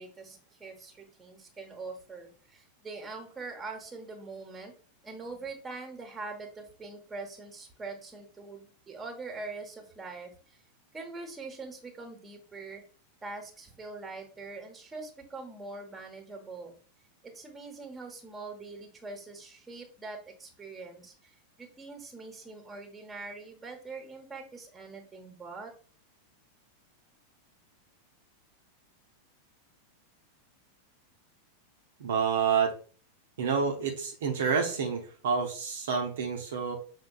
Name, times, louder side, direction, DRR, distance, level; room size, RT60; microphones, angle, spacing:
voice 1, 0.0-4.7 5.0-10.6 10.9-12.8 13.2-16.7 17.2-25.7, right 3 dB, 15° right, 3 dB, 0.9 m, -43 dB
voice 2, 32.0-32.7 33.4-36.7, right 6 dB, 60° right, 2 dB, 0.6 m, -28 dB
5.9 x 2.2 x 2.2 m, 0.41 s
figure-of-eight pair, 90°, 0 cm